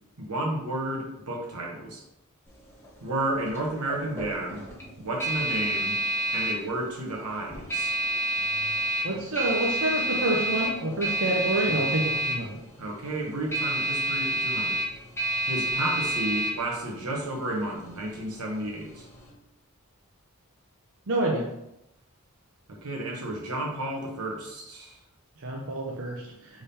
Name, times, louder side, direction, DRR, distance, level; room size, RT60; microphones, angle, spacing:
voice 1, 0.2-2.0 3.0-4.6 5.0-6.0 6.3-7.9 11.8-11.9 12.8-14.8 15.5-19.1 22.7-25.0, right 1 dB, 90° right, -1 dB, 1.1 m, -32 dB
sound 1, 2.5-19.3, right 1 dB, 10° left, 0.9 m, -30 dB
voice 2, 9.0-12.5 21.1-21.5 25.4-26.2, right 1 dB, 60° right, -1 dB, 0.6 m, -27 dB
3.7 x 3.4 x 4.1 m, 0.84 s
head